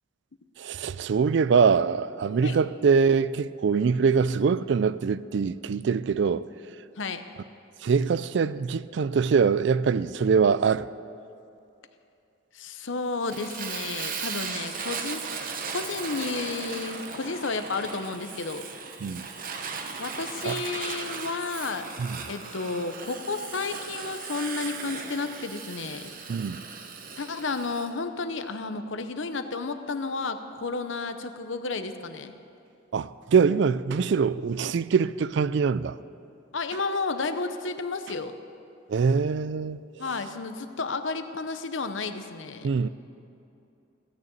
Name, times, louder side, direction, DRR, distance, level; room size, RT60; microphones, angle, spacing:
voice 1, 0.6-6.5 7.8-10.9 19.0-19.3 20.4-20.6 22.0-22.2 26.3-26.6 32.9-36.0 38.9-40.1 42.6-42.9, right 5 dB, 60° right, 0.4 m, -23 dB
voice 2, 12.5-15.3 15.7-18.7 20.0-21.9 22.3-26.1 27.2-32.3 36.5-38.3 40.0-42.7, left 3 dB, 70° left, 0.8 m, -32 dB
Fire, 13.3-27.9, right 5 dB, 45° right, 0.9 m, -37 dB
16.0 x 6.7 x 8.7 m
head